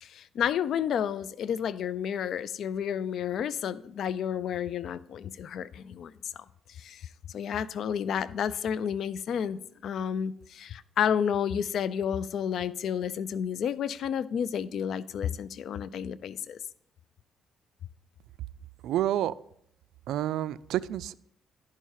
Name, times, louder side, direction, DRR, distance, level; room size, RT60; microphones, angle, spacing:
voice 1, 0.0-6.1 6.8-7.1 7.3-16.6, left 8 dB, 70° left, 0.4 m, -31 dB
voice 2, 18.8-19.3 20.1-21.1, right 12 dB, 85° right, 0.3 m, -29 dB
11.0 x 5.6 x 4.7 m
cardioid pair, 90°, 0 cm